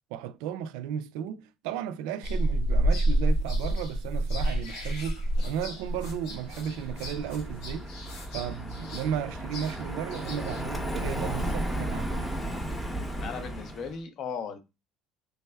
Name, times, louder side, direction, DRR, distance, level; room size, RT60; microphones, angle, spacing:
voice 1, 0.1-7.9 8.3-12.3, right 9 dB, 85° right, 0.3 m, -34 dB
sound 1, 2.2-10.6, right 1 dB, 90° left, 1.9 m, -29 dB
Car passing by, 5.4-14.0, right 1 dB, 10° left, 0.7 m, -35 dB
voice 2, 13.2-14.6, left 6 dB, 50° left, 0.6 m, -36 dB
3.3 x 3.2 x 2.2 m
cardioid pair, 130°, 0 cm